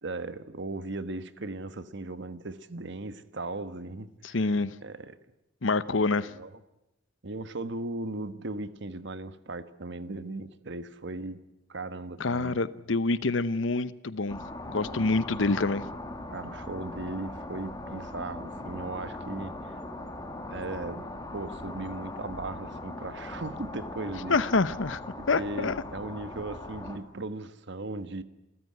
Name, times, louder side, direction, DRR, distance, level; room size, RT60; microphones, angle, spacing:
voice 1, 0.0-5.1 6.0-6.5 7.2-11.4 11.7-12.6 16.3-19.8 20.5-21.1 21.3-24.4 25.2-28.2, right 2 dB, 65° right, 1.3 m, -37 dB
voice 2, 4.2-4.7 5.6-6.3 12.2-14.4 14.7-15.8 24.3-25.0 25.3-25.8, left 3 dB, 75° left, 0.9 m, -26 dB
sound 1, 14.3-27.0, left 1 dB, 20° left, 2.3 m, -40 dB
28.5 x 14.5 x 9.6 m
head